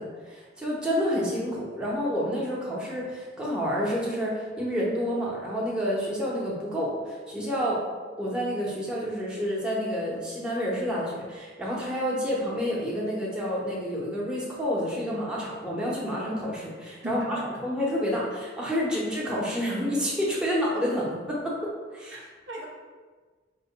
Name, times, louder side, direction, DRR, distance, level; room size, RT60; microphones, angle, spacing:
voice 1, 0.0-7.8 8.2-22.2, equal, 5° right, -6 dB, 0.7 m, -29 dB
voice 2, 17.0-17.5 22.1-22.6, equal, 65° right, -2 dB, 0.8 m, -36 dB
4.5 x 2.2 x 3.8 m, 1.4 s
head